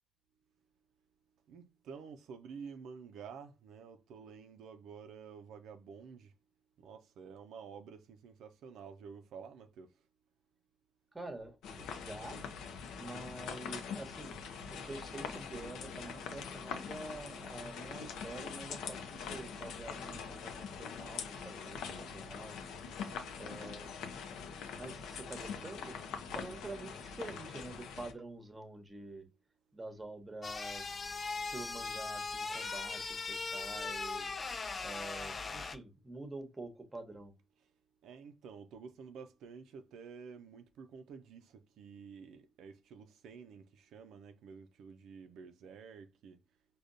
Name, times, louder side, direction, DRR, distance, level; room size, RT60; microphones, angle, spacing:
voice 1, 1.5-6.3 6.8-10.0 21.6-22.2 37.6-37.7 38.0-46.4, right 6 dB, 85° right, 0.4 m, -51 dB
voice 2, 11.1-12.4 13.0-22.6 23.4-23.9 24.8-26.0 26.3-29.3 29.7-31.0 31.4-34.3 34.8-37.3, right 2 dB, 15° right, 0.8 m, -47 dB
sound 1, 11.6-28.1, left 6 dB, 90° left, 0.5 m, -43 dB
sound 2, 30.4-35.8, left 4 dB, 35° left, 0.4 m, -39 dB
5.0 x 2.2 x 2.5 m
cardioid pair, 95°, 0 cm